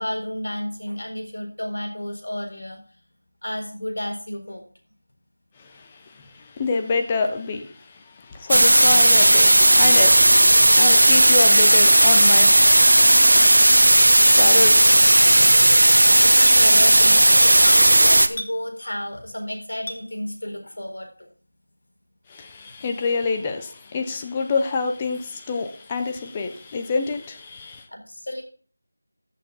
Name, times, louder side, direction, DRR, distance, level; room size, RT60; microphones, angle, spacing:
voice 1, 0.0-2.8 3.4-4.6 16.0-21.3 27.9-28.4, left 1 dB, 80° left, 4.1 m, -32 dB
voice 2, 5.6-13.7 14.2-15.8 22.3-27.9, left 4 dB, 10° left, 0.6 m, -28 dB
sound 1, 8.5-18.3, right 1 dB, 75° right, 1.0 m, -14 dB
Chink clink, 14.3-14.4 16.4-16.6 18.4-18.6 19.9-20.0, left 1 dB, 40° left, 1.4 m, -33 dB
14.5 x 6.7 x 4.0 m
figure-of-eight pair, 180°, 0 cm